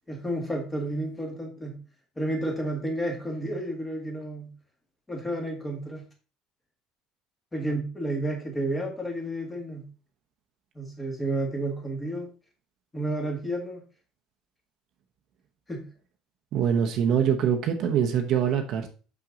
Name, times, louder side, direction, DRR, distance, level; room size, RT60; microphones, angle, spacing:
voice 1, 0.1-1.8 2.2-4.5 5.1-6.0 7.5-9.8 10.7-12.3 12.9-13.8 15.7-15.8, right 1 dB, 10° left, 2 dB, 1.6 m, -31 dB
voice 2, 16.5-18.9, right 8 dB, 45° right, 4 dB, 0.9 m, -24 dB
6.1 x 5.9 x 3.8 m, 0.35 s
cardioid pair, 165°, 0 cm